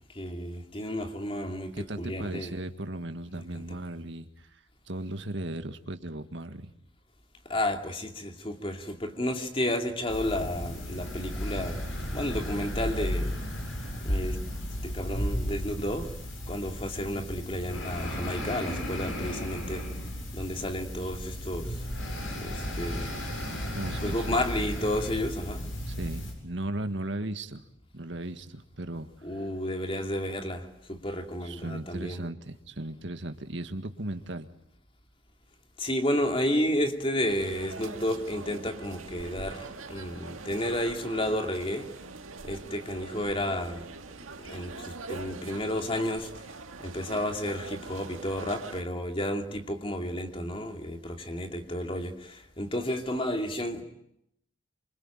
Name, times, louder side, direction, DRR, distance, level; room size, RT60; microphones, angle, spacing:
voice 1, 0.1-2.5 3.3-3.8 7.4-11.8 12.1-13.4 14.0-14.4 14.8-16.1 16.5-19.9 20.3-21.9 22.3-23.1 24.0-25.7 29.2-32.2 35.8-41.9 42.4-43.9 44.4-46.5 46.8-53.8, left 1 dB, 25° left, 5 dB, 2.6 m, -32 dB
voice 2, 1.7-6.7 23.7-24.3 25.9-27.6 27.9-29.4 31.4-34.5, right 1 dB, 60° right, 8 dB, 1.8 m, -37 dB
sound 1, 10.1-26.3, equal, 75° left, 8.0 m, -34 dB
sound 2, 37.2-48.8, right 3 dB, 90° right, 2.0 m, -43 dB
26.0 x 24.5 x 9.0 m, 0.77 s
head